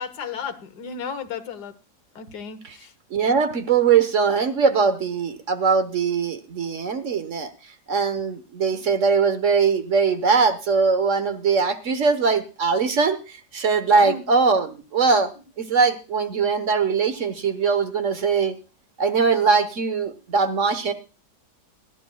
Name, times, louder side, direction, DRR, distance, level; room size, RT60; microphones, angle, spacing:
voice 1, 0.0-1.7 2.2-2.9 14.0-14.2, left 6 dB, 80° left, 11 dB, 1.7 m, -34 dB
voice 2, 3.1-7.5 7.9-15.3 15.6-18.6 19.0-20.9, right 5 dB, 50° right, 10 dB, 1.4 m, -21 dB
20.0 x 13.5 x 2.3 m, 0.32 s
omnidirectional pair, 1.7 m